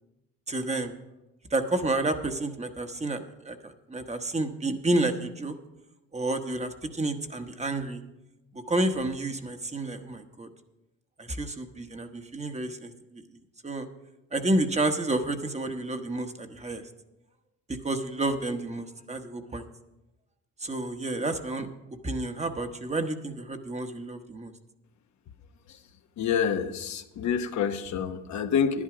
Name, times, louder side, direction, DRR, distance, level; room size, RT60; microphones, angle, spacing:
voice 1, 0.5-0.9 1.5-5.6 6.1-8.0 8.5-10.5 11.2-13.2 13.6-13.9 14.3-16.8 17.7-19.7 20.6-21.7 22.0-24.5, right 2 dB, 20° right, 6 dB, 1.1 m, -30 dB
voice 2, 26.2-28.8, left 7 dB, 65° left, 7 dB, 1.0 m, -27 dB
11.0 x 11.0 x 4.9 m, 0.97 s
cardioid pair, 90°, 30 cm